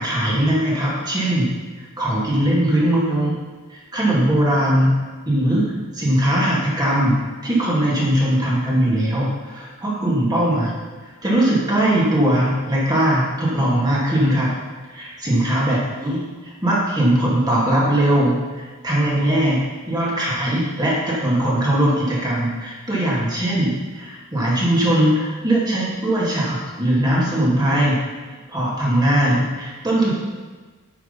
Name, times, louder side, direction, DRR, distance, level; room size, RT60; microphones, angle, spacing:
voice 1, 0.0-1.5 1.8-3.3 3.7-5.0 5.3-10.7 11.0-14.5 14.9-19.6 19.9-28.0 28.5-30.1, right 1 dB, 20° right, -6 dB, 2.6 m, -20 dB
9.4 x 6.7 x 5.6 m, 1.3 s
head